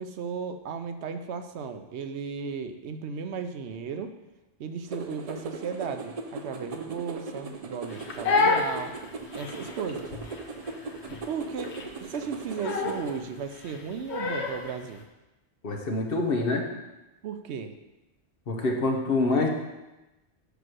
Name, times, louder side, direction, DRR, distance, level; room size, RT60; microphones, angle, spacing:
voice 1, 0.0-4.1 4.6-8.9 9.3-10.1 11.3-15.0 17.2-17.7, right 6 dB, 85° right, 8 dB, 0.9 m, -35 dB
sound 1, 4.9-13.2, right 3 dB, 40° right, 0.6 m, -39 dB
Crying sobbing, 7.9-14.7, left 4 dB, 80° left, 1.1 m, -29 dB
voice 2, 15.6-16.6 18.5-19.5, left 2 dB, 60° left, 2 dB, 1.2 m, -26 dB
6.0 x 5.1 x 6.2 m, 1.0 s
omnidirectional pair, 1.1 m